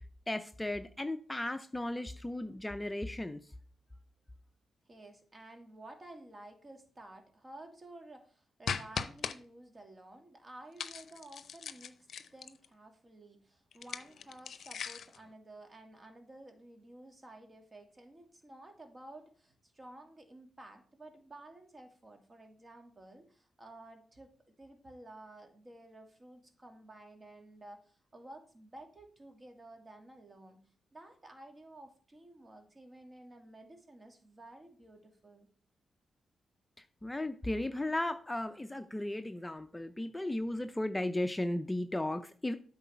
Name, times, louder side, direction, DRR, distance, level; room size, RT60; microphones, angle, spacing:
voice 1, 0.3-3.5 37.0-42.6, left 1 dB, 15° left, 9 dB, 0.6 m, -35 dB
voice 2, 4.9-24.3 24.6-30.6 30.9-35.5, right 1 dB, 30° right, 4 dB, 2.2 m, -53 dB
sound 1, 8.7-9.4 10.8-12.7 13.7-15.2, left 7 dB, 70° left, 0.6 m, -39 dB
8.3 x 4.0 x 5.7 m, 0.43 s
supercardioid pair, 55°, 0 cm